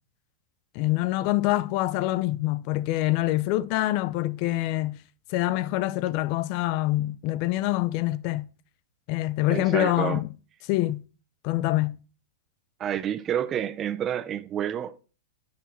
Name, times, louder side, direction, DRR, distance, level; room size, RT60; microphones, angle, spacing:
voice 1, 0.7-5.0 5.3-8.5 9.1-10.3 10.7-11.0 11.4-12.0, left 16 dB, 40° left, 0.5 m, -25 dB
voice 2, 9.5-10.2 12.8-15.0, right 10 dB, 20° right, 0.6 m, -29 dB
9.8 x 7.1 x 3.1 m
supercardioid pair, 155°, 0 cm